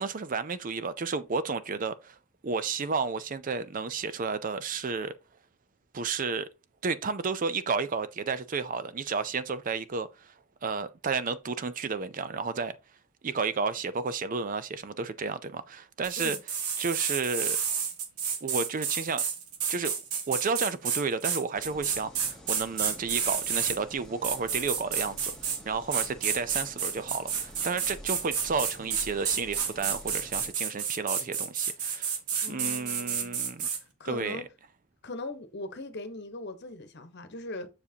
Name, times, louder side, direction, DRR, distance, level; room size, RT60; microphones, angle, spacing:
voice 1, 0.0-2.2 2.4-5.1 5.9-6.5 6.8-10.3 10.6-12.8 13.2-16.4 16.8-17.6 18.4-19.2 19.7-19.9 20.3-32.2 32.5-33.7 34.0-34.4, right 4 dB, 35° right, 0.4 m, -32 dB
sound 1, 16.0-23.8 24.2-25.6 25.9-33.8, right 7 dB, 90° right, 1.6 m, -30 dB
sound 2, 21.5-30.5, equal, 5° left, 1.3 m, -49 dB
voice 2, 32.4-33.4 34.0-34.4 35.0-37.7, left 2 dB, 50° left, 1.1 m, -40 dB
7.2 x 6.6 x 2.8 m
head